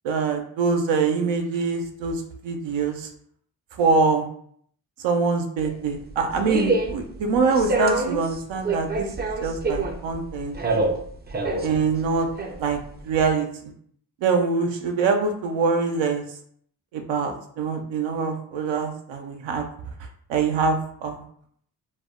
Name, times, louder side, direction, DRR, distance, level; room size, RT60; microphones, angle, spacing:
voice 1, 0.0-3.1 3.8-4.3 5.0-10.5 11.6-12.3 12.6-12.8 13.0-13.5 14.2-16.2 16.9-19.7 20.3-21.2, right 4 dB, 85° right, 4 dB, 0.6 m, -24 dB
sound 1, 5.6-13.3, right 3 dB, 25° right, 0.4 m, -27 dB
2.3 x 2.1 x 3.5 m, 0.63 s
supercardioid pair, 50°, 44 cm